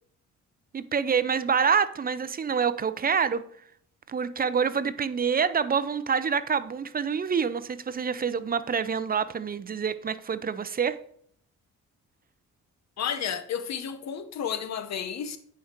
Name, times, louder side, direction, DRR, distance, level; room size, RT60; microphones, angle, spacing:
voice 1, 0.7-3.4 4.1-11.0, right 6 dB, 30° right, 0.6 m, -26 dB
voice 2, 13.0-15.4, left 8 dB, 60° left, 1.1 m, -32 dB
9.2 x 5.1 x 4.5 m
cardioid pair, 90°, 30 cm